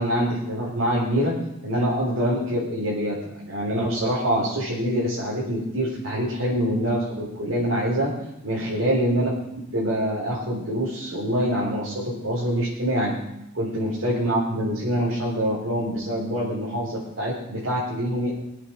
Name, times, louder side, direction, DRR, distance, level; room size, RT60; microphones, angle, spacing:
voice 1, 0.0-1.3 1.6-8.1 8.4-9.3 9.7-13.1 13.5-18.3, equal, 75° right, -7 dB, 4.1 m, -25 dB
23.0 x 8.5 x 4.8 m, 0.86 s
head